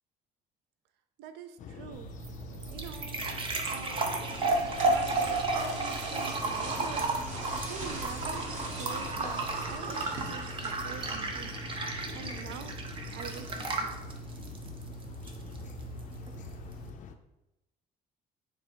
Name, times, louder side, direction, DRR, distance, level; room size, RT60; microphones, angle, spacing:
voice 1, 1.2-2.1 2.7-3.3 3.7-7.1 7.7-8.5 8.8-11.6 12.1-12.8 13.1-14.1, right 7 dB, 90° right, 9 dB, 0.4 m, -45 dB
sound 1, 1.6-17.2, left 6 dB, 50° left, 0.4 m, -45 dB
sound 2, 1.9-16.9, right 3 dB, 30° right, 0.6 m, -34 dB
sound 3, 3.8-11.6, right 2 dB, 45° right, 1.0 m, -42 dB
3.4 x 2.7 x 4.3 m, 0.92 s
cardioid pair, 110°, 17 cm